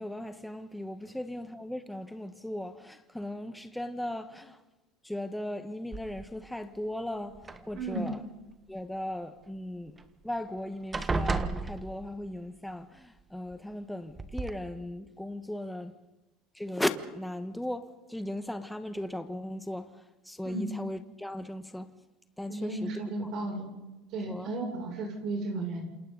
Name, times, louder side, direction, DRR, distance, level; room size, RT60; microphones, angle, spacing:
voice 1, 0.0-4.6 5.0-7.4 7.7-8.2 8.7-10.0 10.2-15.9 16.5-21.9 22.4-22.9 23.2-23.3 24.3-24.5, left 1 dB, 5° left, 1.4 m, -37 dB
sound 1, 5.9-6.5 7.3-8.2 10.0-10.1 10.4-10.6 10.9-12.4 13.5-13.6 14.2-14.5, right 3 dB, 15° right, 1.4 m, -33 dB
voice 2, 7.7-8.1 20.4-20.7 22.5-23.7 24.1-25.8, right 2 dB, 55° right, 7.0 m, -34 dB
28.0 x 27.5 x 4.1 m
supercardioid pair, 130°, 0 cm